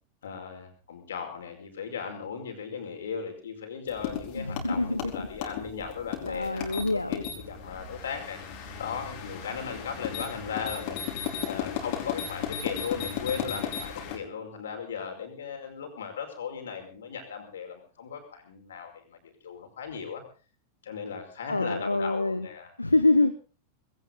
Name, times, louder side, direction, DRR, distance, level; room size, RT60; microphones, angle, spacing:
voice 1, 0.2-8.4 8.8-20.2 20.8-22.7, left 6 dB, 65° left, 5 dB, 5.1 m, -37 dB
sound 1, 3.9-14.2, left 8 dB, 45° left, 4.5 m, -36 dB
voice 2, 4.4-5.1 6.2-7.2 21.5-22.5 22.8-23.4, left 2 dB, 85° left, 11 dB, 0.9 m, -25 dB
20.0 x 17.5 x 4.0 m, 0.37 s
figure-of-eight pair, 90°, 0 cm